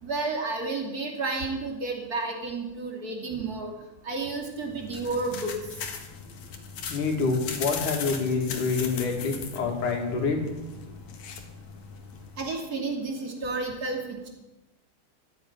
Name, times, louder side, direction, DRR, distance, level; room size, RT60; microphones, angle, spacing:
voice 1, 0.0-3.7 4.0-5.5 12.4-14.3, right 3 dB, 30° right, 1 dB, 2.9 m, -31 dB
sound 1, 4.6-12.5, left 6 dB, 65° left, 2.9 m, -39 dB
voice 2, 6.9-10.4, left 4 dB, 85° left, 2 dB, 4.2 m, -27 dB
14.0 x 10.0 x 9.3 m, 1.0 s
omnidirectional pair, 3.5 m